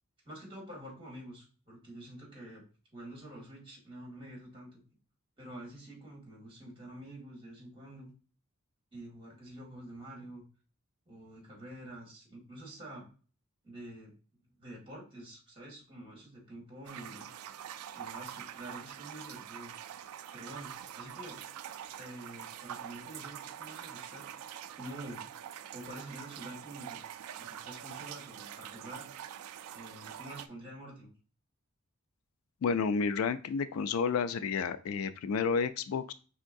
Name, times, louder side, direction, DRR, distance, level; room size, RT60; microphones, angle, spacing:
voice 1, 0.2-2.6 2.9-4.8 5.4-8.1 8.9-10.4 11.1-13.1 13.6-14.1 14.6-17.3 17.9-19.7 20.3-21.4 22.0-24.5 24.8-25.2 25.7-27.0 27.4-29.1 29.7-31.1, right 1 dB, 25° right, -3 dB, 1.9 m, -47 dB
sound 1, 16.9-30.5, right 10 dB, 90° right, 0.3 m, -45 dB
voice 2, 32.6-36.1, left 5 dB, 70° left, 12 dB, 0.3 m, -31 dB
4.5 x 3.6 x 2.5 m, 0.37 s
head